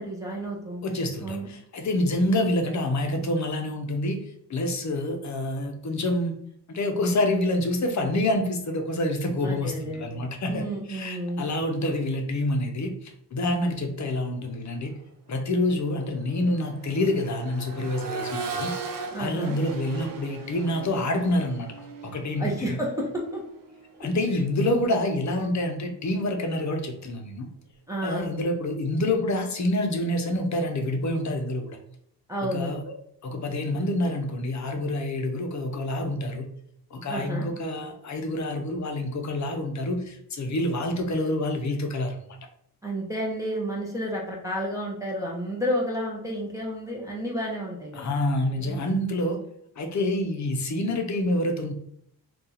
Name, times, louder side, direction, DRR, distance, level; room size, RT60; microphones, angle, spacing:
voice 1, 0.0-1.5 9.4-10.2 10.5-11.5 13.6-13.8 19.1-19.6 22.4-23.4 27.9-28.4 32.3-32.7 37.1-37.5 42.8-48.2 48.6-49.0, equal, 10° right, -3 dB, 0.6 m, -31 dB
voice 2, 0.8-4.2 4.5-6.4 6.7-14.9 15.3-18.7 19.2-21.7 22.1-22.8 24.0-27.5 28.0-31.8 32.5-32.8 33.2-36.5 36.9-42.2 47.9-49.4 49.8-51.7, left 1 dB, 45° left, 4 dB, 0.6 m, -27 dB
Accelerating revving vroom, 14.7-14.9 15.3-25.2 26.9-27.0, right 4 dB, 55° right, 0.5 m, -39 dB
2.7 x 2.4 x 3.8 m, 0.70 s
wide cardioid pair, 125°, 40 cm